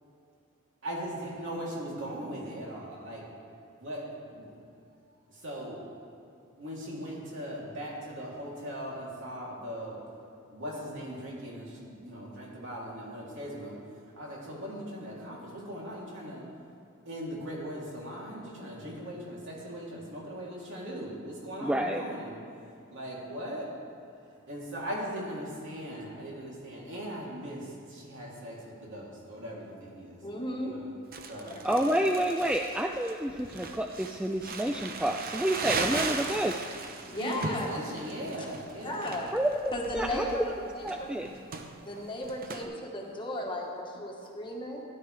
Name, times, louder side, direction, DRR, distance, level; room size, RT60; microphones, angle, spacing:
voice 1, 0.8-3.2 3.8-4.5 5.4-5.8 6.6-10.0 10.5-13.8 14.2-16.4 17.0-22.4 22.9-23.7 24.5-30.8 31.3-31.7 37.1-39.1, equal, 60° right, -5 dB, 3.0 m, -39 dB
voice 2, 21.6-22.0 31.6-36.6 39.3-40.2 40.8-41.3, right 1 dB, 5° right, 2 dB, 0.3 m, -29 dB
voice 3, 30.2-30.8 31.4-31.9 37.1-37.7 38.8-39.4 39.7-41.1 41.8-44.8, left 1 dB, 25° left, -1 dB, 1.4 m, -35 dB
Crumpling crinkling, 31.1-42.6, right 4 dB, 45° right, 0.8 m, -38 dB
16.0 x 11.0 x 3.3 m, 2.5 s
head